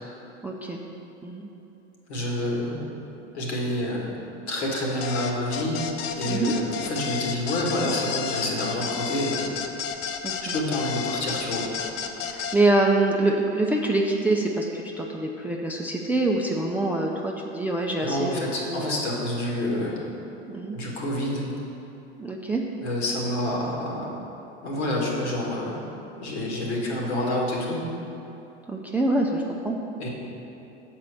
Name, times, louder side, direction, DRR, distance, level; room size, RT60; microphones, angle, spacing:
voice 1, 0.4-0.8 1.2-1.5 6.2-6.5 10.2-10.5 12.3-19.0 20.5-20.8 22.2-22.6 28.7-29.8, right 2 dB, 5° right, 0 dB, 0.3 m, -25 dB
voice 2, 2.1-2.8 3.3-4.1 4.5-5.8 6.2-9.5 10.5-11.7 18.0-20.0 20.7-21.4 22.8-24.2 24.6-25.8 26.2-27.8 30.0-30.1, left 1 dB, 70° left, -2 dB, 1.8 m, -28 dB
sound 1, 5.0-12.6, left 7 dB, 55° left, 0.6 m, -31 dB
6.8 x 4.4 x 6.5 m, 3.0 s
hypercardioid pair, 85°, 34 cm